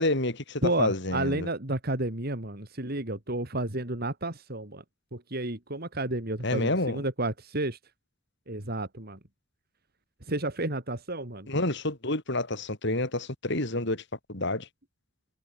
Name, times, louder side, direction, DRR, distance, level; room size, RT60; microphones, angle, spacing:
voice 1, 0.0-1.5 6.4-7.0 11.5-14.0 14.3-14.7, left 2 dB, 60° left, 5.2 m, -29 dB
voice 2, 0.6-4.8 5.1-7.8 8.5-9.2 10.3-11.5, right 2 dB, 50° right, 3.5 m, -31 dB
head